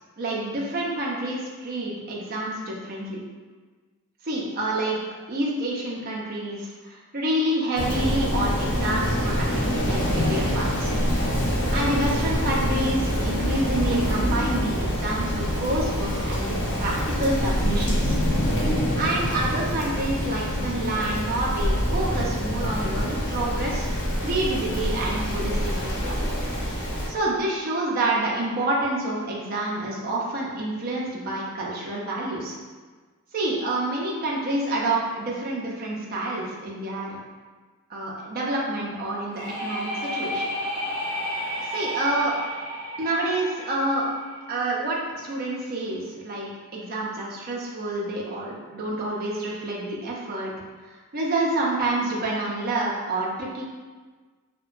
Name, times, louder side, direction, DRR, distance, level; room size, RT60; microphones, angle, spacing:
voice 1, 0.2-3.2 4.2-5.0 5.3-10.9 11.7-18.2 19.0-23.9 24.2-26.4 27.1-32.6 33.3-37.2 37.9-40.5 41.7-42.3 43.0-44.1 44.5-50.5 50.9-53.6, right 1 dB, 45° right, -4 dB, 0.5 m, -28 dB
Rain, 7.7-27.1, equal, 55° left, 0.5 m, -25 dB
sound 1, 39.3-45.0, equal, 25° right, 1.0 m, -32 dB
2.7 x 2.1 x 2.4 m, 1.4 s
head